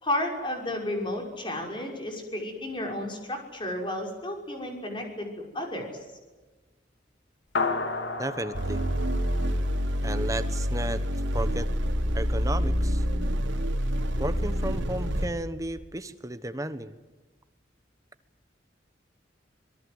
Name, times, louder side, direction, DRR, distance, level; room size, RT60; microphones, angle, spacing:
voice 1, 0.0-5.9, left 1 dB, 25° left, 2 dB, 6.0 m, -32 dB
sound 1, 7.6-10.3, left 3 dB, 70° left, 2.4 m, -32 dB
voice 2, 8.2-8.8 10.0-11.0 11.3-11.7 12.1-13.0 14.2-17.0, right 1 dB, 15° right, 12 dB, 1.1 m, -33 dB
sound 2, 8.5-15.3, equal, 80° right, 2.8 m, -27 dB
26.0 x 22.0 x 8.0 m, 1.2 s
head